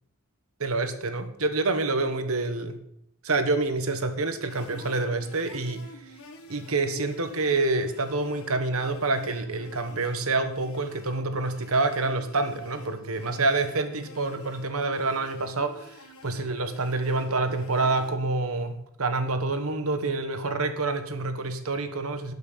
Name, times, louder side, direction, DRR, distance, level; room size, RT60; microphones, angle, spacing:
voice 1, 0.6-2.8 3.2-5.8 6.5-16.0 16.2-22.3, right 3 dB, 70° right, 9 dB, 1.3 m, -27 dB
sound 1, 4.5-18.1, left 1 dB, 85° left, 1.8 m, -48 dB
12.0 x 6.3 x 7.3 m, 0.72 s
head